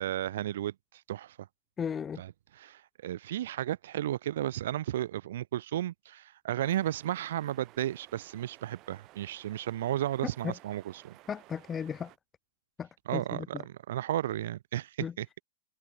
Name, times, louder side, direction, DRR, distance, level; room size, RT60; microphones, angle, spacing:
voice 1, 0.0-1.4 2.2-11.2 13.1-15.3, right 12 dB, 55° right, 0.7 m, -34 dB
voice 2, 1.8-2.2 10.2-10.5 11.3-12.1 12.8-13.6 15.0-15.1, left 7 dB, 20° left, 2.0 m, -36 dB
sound 1, 6.6-12.2, right 18 dB, 35° right, 5.6 m, -57 dB
figure-of-eight pair, 100°, 0 cm